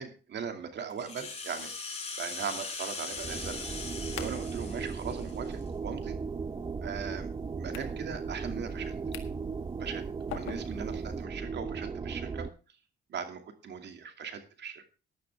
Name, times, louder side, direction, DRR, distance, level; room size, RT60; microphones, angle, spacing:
voice 1, 0.0-1.7 2.2-3.7 4.2-6.2 6.8-7.3 7.6-8.9 9.8-12.5 13.1-14.8, right 6 dB, 60° right, 7 dB, 2.5 m, -39 dB
Rattle (instrument), 0.9-5.7, left 4 dB, 30° left, 5.3 m, -40 dB
sound 1, 3.1-12.5, right 5 dB, 20° right, 0.6 m, -37 dB
sound 2, 3.2-11.2, left 11 dB, 90° left, 1.8 m, -49 dB
15.0 x 11.0 x 3.5 m, 0.34 s
cardioid pair, 90°, 20 cm